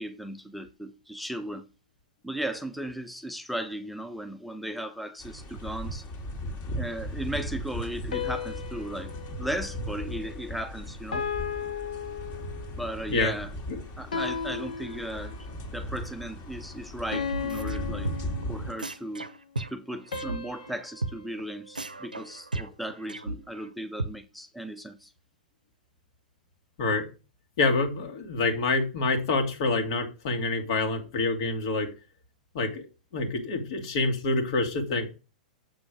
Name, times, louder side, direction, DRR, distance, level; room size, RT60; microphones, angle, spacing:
voice 1, 0.0-1.6 2.2-6.0 6.8-11.3 12.8-13.5 14.0-15.3 15.7-18.1 18.5-19.3 19.7-25.1, right 1 dB, ahead, 0.6 m, -36 dB
sound 1, 5.2-18.7, equal, 35° left, 2.3 m, -37 dB
sound 2, 8.1-10.6 11.1-12.9 14.1-15.6 17.1-19.0 20.1-22.5, left 6 dB, 70° left, 1.1 m, -36 dB
sound 3, 17.3-17.8 18.0-18.4 18.8-20.4 20.6-20.7 21.0-21.1 21.4-21.5 21.7-23.7 24.0-24.1, right 2 dB, 90° right, 0.7 m, -34 dB
voice 2, 27.6-31.9 32.5-32.9 33.1-35.1, left 3 dB, 55° left, 2.4 m, -27 dB
7.7 x 6.2 x 5.0 m
figure-of-eight pair, 100°, 4 cm